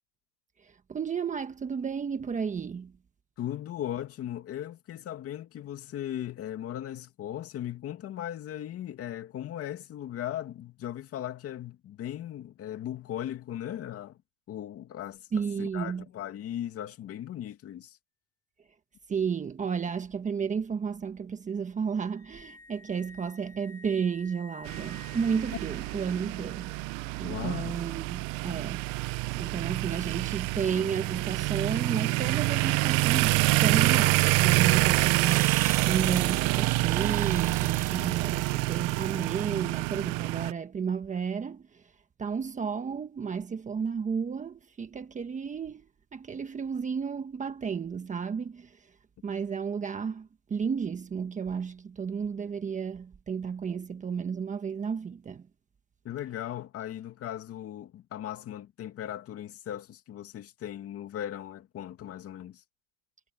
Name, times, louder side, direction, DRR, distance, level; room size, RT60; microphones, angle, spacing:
voice 1, 0.6-2.9 15.3-16.0 19.1-26.7 27.2-28.9 29.4-41.8 42.2-45.9 46.1-48.8 49.2-55.4, right 6 dB, 20° right, 1.3 m, -32 dB
voice 2, 3.4-14.2 14.5-15.2 15.6-18.0 27.2-27.8 56.0-62.6, left 11 dB, 35° left, 2.4 m, -38 dB
sound 1, 22.0-28.2 35.0-37.9, left 1 dB, 10° left, 3.1 m, -52 dB
sound 2, 24.7-40.5, right 23 dB, 50° right, 0.8 m, -27 dB
supercardioid pair, 145°, 42 cm